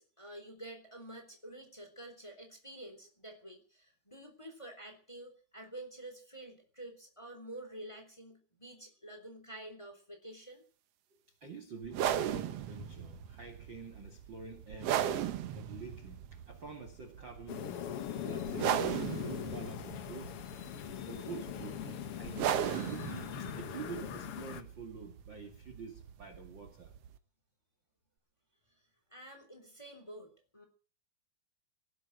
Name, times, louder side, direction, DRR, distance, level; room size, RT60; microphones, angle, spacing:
voice 1, 0.0-10.6 29.1-30.6, right 1 dB, 10° left, 3.2 m, -49 dB
voice 2, 11.4-17.8 18.2-20.4 21.1-26.9, right 5 dB, 35° right, 2.4 m, -47 dB
sound 1, 11.8-27.2, right 10 dB, 70° right, 1.5 m, -37 dB
sound 2, 17.5-24.6, left 10 dB, 85° left, 1.2 m, -41 dB
18.5 x 7.8 x 9.0 m
omnidirectional pair, 4.2 m